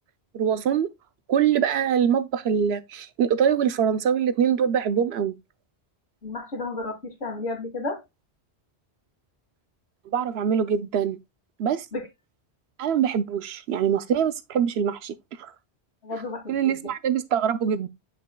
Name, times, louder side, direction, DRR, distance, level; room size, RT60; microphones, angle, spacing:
voice 1, 0.3-0.9 1.3-5.3 10.1-11.2 11.6-11.9 12.8-15.1 15.4-15.5 16.5-17.9, right 8 dB, 75° right, 0.8 m, -23 dB
voice 2, 6.2-8.0 11.9-12.1 16.0-16.8, left 2 dB, 75° left, 2.4 m, -32 dB
8.7 x 5.3 x 2.2 m
omnidirectional pair, 1.1 m